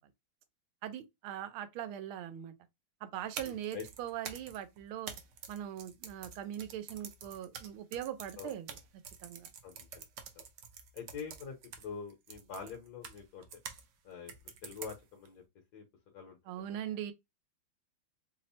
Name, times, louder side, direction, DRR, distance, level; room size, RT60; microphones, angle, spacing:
voice 1, 0.8-2.5 3.0-5.1 5.5-8.8 9.2-9.5 16.5-17.1, right 11 dB, 90° right, 1.5 m, -41 dB
sound 1, 3.2-13.8 14.3-15.3, right 7 dB, 65° right, 1.1 m, -48 dB
voice 2, 3.4-3.8 8.4-8.5 9.6-10.1 10.4-10.5 10.9-13.5 14.0-14.3 14.6-15.4 15.7-15.8 16.1-16.8, left 6 dB, 60° left, 1.2 m, -45 dB
3.6 x 2.0 x 4.1 m
omnidirectional pair, 2.2 m